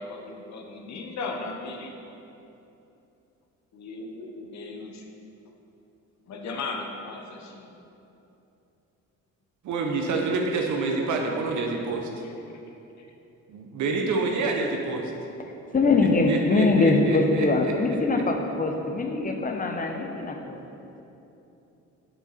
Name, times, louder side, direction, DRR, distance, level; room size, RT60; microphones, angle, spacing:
voice 1, 0.0-1.9 3.7-5.1 6.3-7.8 12.7-13.1, left 3 dB, 65° left, 2 dB, 1.0 m, -37 dB
voice 2, 9.6-12.1 13.5-15.1 16.3-17.8, right 3 dB, 75° right, 1 dB, 0.8 m, -27 dB
voice 3, 15.7-20.6, left 3 dB, 30° left, 4 dB, 0.8 m, -23 dB
7.1 x 6.9 x 4.2 m, 2.9 s
cardioid pair, 90°, 30 cm